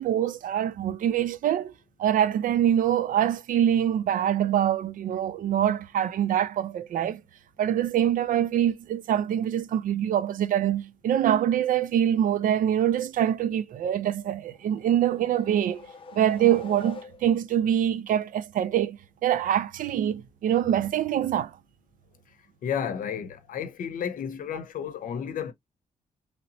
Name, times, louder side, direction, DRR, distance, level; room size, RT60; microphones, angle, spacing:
voice 1, 0.0-1.7 2.0-7.2 7.6-15.8 16.1-21.5, right 10 dB, 80° right, 0.4 m, -24 dB
sound 1, 14.5-17.6, left 5 dB, 40° left, 0.6 m, -46 dB
voice 2, 22.6-25.5, left 8 dB, 80° left, 0.7 m, -32 dB
3.2 x 2.9 x 2.7 m
wide cardioid pair, 155°, 14 cm